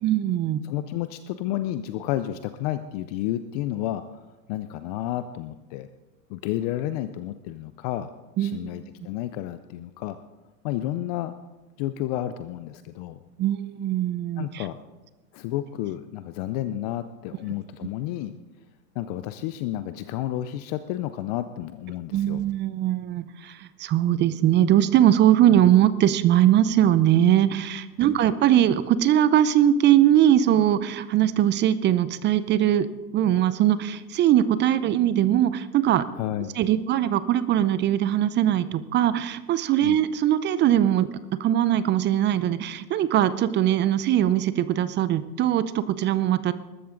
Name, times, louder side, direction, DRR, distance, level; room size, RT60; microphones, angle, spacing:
voice 1, 0.0-0.6 8.4-8.7 13.4-14.6 22.1-32.9 33.1-36.0 36.6-41.1 41.4-46.5, right 11 dB, 20° right, 15 dB, 0.5 m, -21 dB
voice 2, 0.6-4.0 4.5-5.9 6.3-8.1 8.4-10.2 10.6-11.3 11.8-13.2 14.4-14.8 15.3-18.3 19.0-22.4 28.0-28.2 36.2-36.6 39.8-40.0, left 13 dB, 30° left, 12 dB, 0.3 m, -31 dB
20.5 x 13.0 x 3.8 m, 1.1 s
hypercardioid pair, 105°, 50 cm